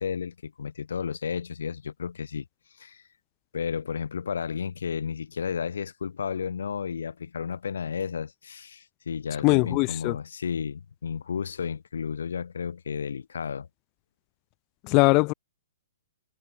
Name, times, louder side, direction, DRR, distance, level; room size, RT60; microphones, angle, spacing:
voice 1, 0.0-2.4 2.8-3.0 3.5-13.7, left 6 dB, 75° left, 0.9 m, -32 dB
voice 2, 9.4-10.2 14.8-15.3, left 29 dB, 35° left, 0.5 m, -21 dB
hypercardioid pair, 130°, 0 cm